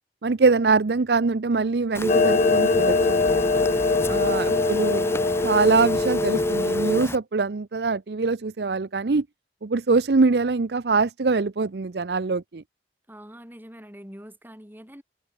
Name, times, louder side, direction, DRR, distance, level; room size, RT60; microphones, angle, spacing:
voice 1, 0.2-3.2 4.1-5.0 5.4-9.3 9.6-12.6, right 4 dB, 65° right, 0.6 m, -23 dB
Telephone, 1.9-7.2, left 1 dB, 15° left, 1.7 m, -25 dB
Clock, 2.1-7.1, left 4 dB, 45° left, 0.4 m, -24 dB
voice 2, 4.1-5.5 13.1-15.0, equal, 10° right, 6.9 m, -43 dB
head